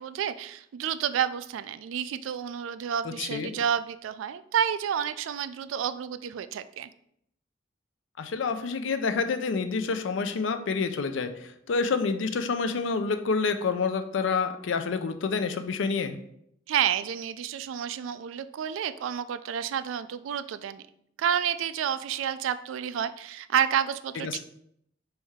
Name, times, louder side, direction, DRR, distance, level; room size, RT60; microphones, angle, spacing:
voice 1, 0.0-6.9 16.7-20.8 21.2-24.3, right 8 dB, 85° right, 14 dB, 0.3 m, -30 dB
voice 2, 3.0-3.5 8.2-16.2 24.2-24.4, left 4 dB, 75° left, 8 dB, 0.4 m, -28 dB
4.1 x 3.4 x 3.5 m, 0.71 s
head